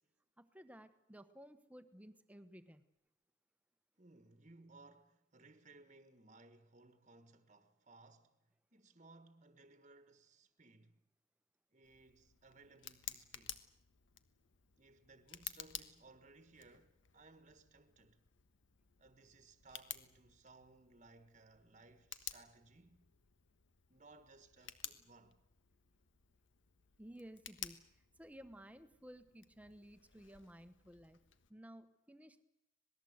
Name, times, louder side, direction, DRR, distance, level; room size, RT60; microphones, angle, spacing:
voice 1, 0.4-2.8 27.0-31.2 31.5-32.4, equal, 5° right, 1.1 m, -56 dB
voice 2, 4.0-8.4 8.7-11.0 11.7-13.6 14.8-18.2 19.0-23.1 23.9-25.4, right 3 dB, 35° right, 1.5 m, -62 dB
Tick, 11.8-31.5, left 11 dB, 65° left, 1.4 m, -54 dB
26.5 x 19.5 x 8.1 m
head